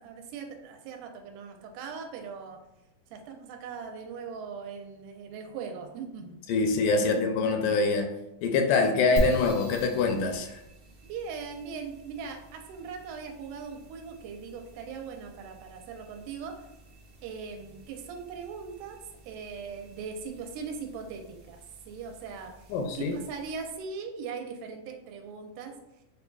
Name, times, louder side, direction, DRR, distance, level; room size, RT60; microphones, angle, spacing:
voice 1, 0.0-2.6 3.1-6.4 7.0-7.2 11.1-16.7 17.2-19.0 19.2-21.6 21.9-25.8, right 5 dB, 80° right, 3 dB, 2.1 m, -40 dB
voice 2, 6.5-8.1 8.4-10.6 22.7-23.2, left 3 dB, 85° left, 4 dB, 2.1 m, -25 dB
sound 1, 9.2-23.9, right 1 dB, 60° right, 1.2 m, -42 dB
6.5 x 2.5 x 2.3 m, 0.89 s
omnidirectional pair, 3.7 m